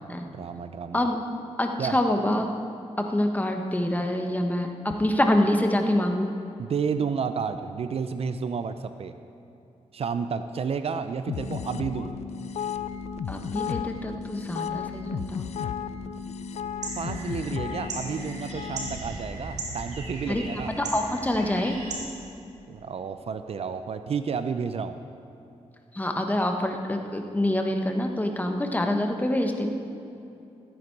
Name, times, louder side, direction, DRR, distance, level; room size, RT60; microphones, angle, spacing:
voice 1, 0.3-1.1 1.8-2.0 6.6-9.1 9.9-12.1 15.8-15.9 17.0-20.7 22.7-25.0, right 6 dB, 60° right, 10 dB, 0.6 m, -31 dB
voice 2, 1.6-2.5 3.1-6.3 13.3-15.5 20.3-20.4 20.8-21.8 25.9-29.7, left 1 dB, 15° left, 4 dB, 1.3 m, -26 dB
sound 1, 11.3-19.0, left 7 dB, 70° left, 0.5 m, -34 dB
sound 2, 16.8-22.0, right 2 dB, 85° right, 2.3 m, -37 dB
14.5 x 9.3 x 4.7 m, 2.7 s
cardioid pair, 65°, 12 cm